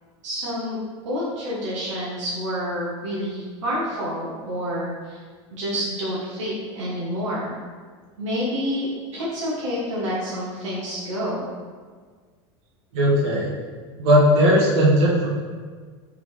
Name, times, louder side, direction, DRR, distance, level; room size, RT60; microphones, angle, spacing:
voice 1, 0.2-0.8 1.0-5.2 5.5-7.5 8.2-11.5, equal, 90° right, -7 dB, 1.1 m, -28 dB
voice 2, 12.9-13.5 14.0-15.3, equal, 70° right, -5 dB, 1.3 m, -17 dB
3.7 x 3.6 x 3.1 m, 1.5 s
hypercardioid pair, 105°, 15 cm